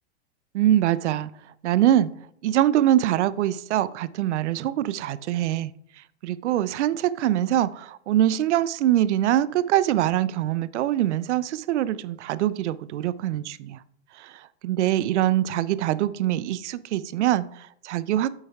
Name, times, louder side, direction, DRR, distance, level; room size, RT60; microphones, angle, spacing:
voice 1, 0.5-1.3 1.6-2.1 2.4-5.7 6.0-13.8 14.1-18.3, right 12 dB, 75° right, 17 dB, 0.5 m, -23 dB
8.7 x 8.0 x 2.3 m, 0.69 s
hypercardioid pair, 140°, 35 cm